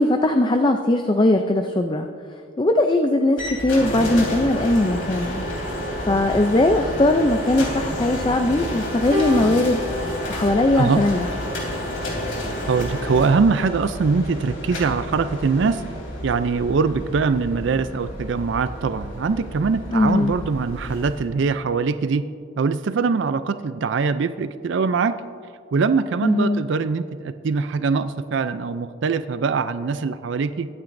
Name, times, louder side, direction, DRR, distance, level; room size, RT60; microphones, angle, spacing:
voice 1, 0.0-2.1 2.6-5.4 6.0-9.8 10.3-11.3 19.9-20.3 26.2-26.6, left 1 dB, 20° left, 5 dB, 0.4 m, -19 dB
sound 1, 3.4-21.2, equal, 85° left, 3.3 m, -30 dB
sound 2, 9.1-11.6 12.6-12.8, left 2 dB, 45° right, 2.4 m, -31 dB
voice 2, 12.7-15.8 16.2-22.2 22.6-25.1 25.7-30.7, right 5 dB, 60° right, 12 dB, 0.4 m, -22 dB
22.5 x 8.9 x 2.6 m, 2.3 s
head